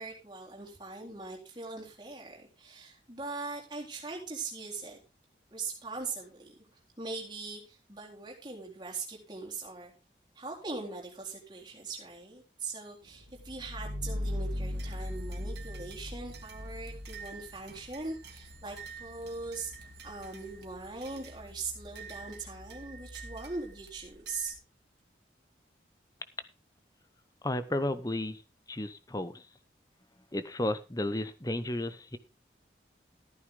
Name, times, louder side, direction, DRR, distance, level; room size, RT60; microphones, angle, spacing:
voice 1, 0.0-5.0 5.5-6.6 7.0-9.9 10.3-24.6, right 3 dB, 25° right, -1 dB, 3.8 m, -41 dB
sound 1, 13.2-17.8, left 1 dB, 90° right, 2.5 m, -37 dB
sound 2, 14.7-24.6, right 3 dB, 65° right, 2.2 m, -49 dB
voice 2, 27.4-28.4 28.7-29.5 30.3-32.2, left 1 dB, 20° left, 11 dB, 0.9 m, -33 dB
14.5 x 9.5 x 3.7 m, 0.29 s
head